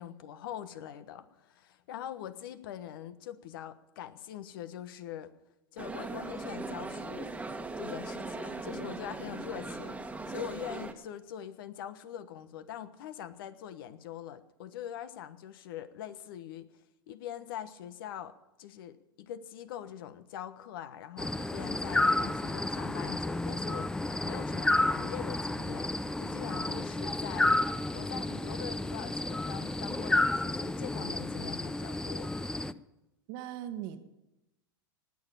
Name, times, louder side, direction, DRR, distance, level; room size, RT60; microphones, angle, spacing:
voice 1, 0.0-5.3 5.7-7.3 7.8-16.7 17.1-18.3 18.6-27.5 27.9-32.3, left 10 dB, 70° left, 12 dB, 1.2 m, -43 dB
sound 1, 5.8-10.9, right 3 dB, 10° right, 1.4 m, -39 dB
sound 2, 21.2-32.7, left 2 dB, 5° left, 0.5 m, -31 dB
voice 2, 33.3-34.0, right 11 dB, 60° right, 8 dB, 1.5 m, -39 dB
19.0 x 7.2 x 8.8 m, 0.96 s
hypercardioid pair, 100°, 12 cm